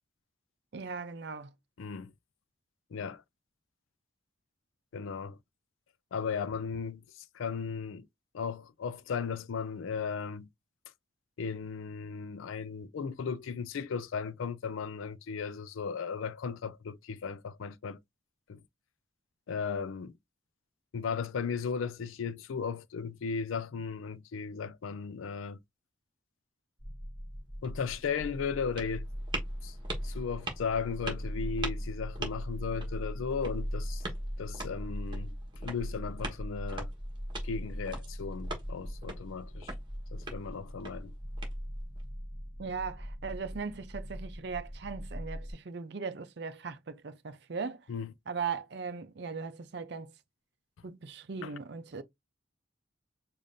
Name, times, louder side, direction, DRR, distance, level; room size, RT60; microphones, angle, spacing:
voice 1, 0.7-1.5 42.6-47.8 48.3-50.1 50.8-52.0, right 5 dB, 55° right, 0.5 m, -38 dB
voice 2, 1.8-2.1 2.9-3.2 4.9-5.4 6.1-8.1 8.3-10.5 11.4-18.0 18.5-18.6 19.5-20.1 20.9-25.6 27.6-29.1 29.6-29.8 30.0-34.0 34.4-35.3 35.6-36.9 37.4-39.7 40.1-41.1 47.9-48.1 51.4-51.5, left 6 dB, 85° left, 0.4 m, -36 dB
sound 1, 26.8-45.5, equal, 5° left, 0.9 m, -40 dB
sound 2, 27.5-42.0, right 2 dB, 25° right, 1.2 m, -45 dB
5.1 x 2.5 x 2.6 m
head